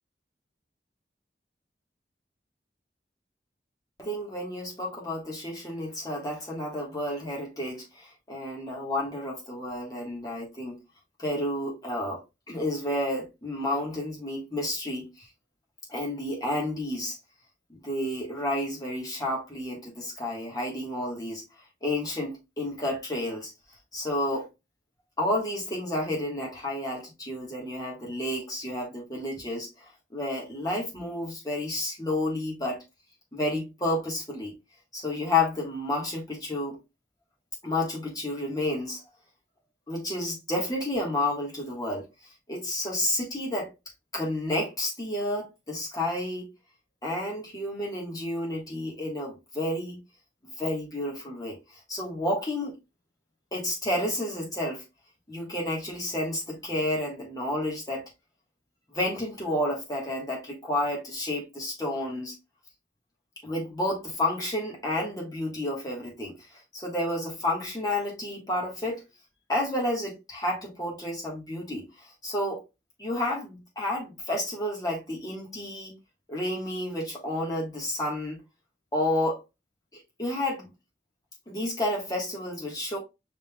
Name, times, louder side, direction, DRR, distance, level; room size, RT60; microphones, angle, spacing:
voice 1, 4.0-10.8 11.2-15.2 15.9-17.2 17.7-21.4 21.8-23.5 23.9-24.5 25.2-29.8 30.1-32.8 33.3-34.5 34.9-36.8 37.6-39.0 39.9-42.1 42.5-43.7 44.1-46.5 47.0-50.0 50.6-52.7 53.5-54.8 55.3-58.1 58.9-62.3 63.4-66.3 66.7-69.0 69.5-72.6 73.0-76.0 76.3-78.4 78.9-79.4 79.9-80.7 81.5-83.0, left 1 dB, 20° left, 1.5 m, -31 dB
5.4 x 3.5 x 2.3 m
head